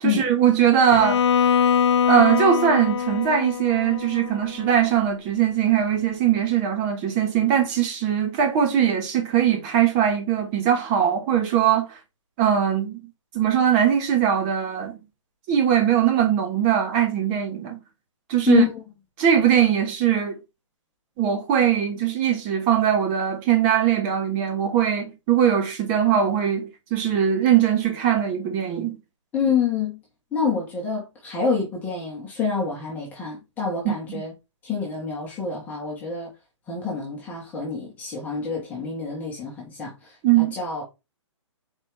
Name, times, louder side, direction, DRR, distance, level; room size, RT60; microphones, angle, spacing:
voice 1, 0.0-1.2 2.1-12.0 12.4-13.0 13.3-15.0 15.5-17.8 18.3-18.6 19.2-20.4 21.2-29.0 33.8-34.0 40.2-40.5, right 9 dB, 20° right, 0.9 m, -21 dB
Bowed string instrument, 0.9-4.9, left 7 dB, 60° left, 0.5 m, -23 dB
voice 2, 18.5-18.8 29.3-30.0 30.3-34.3 34.6-36.3 36.7-40.1 40.5-40.8, left 6 dB, 10° left, 1.4 m, -27 dB
4.5 x 3.3 x 3.3 m
hypercardioid pair, 165°, 16 cm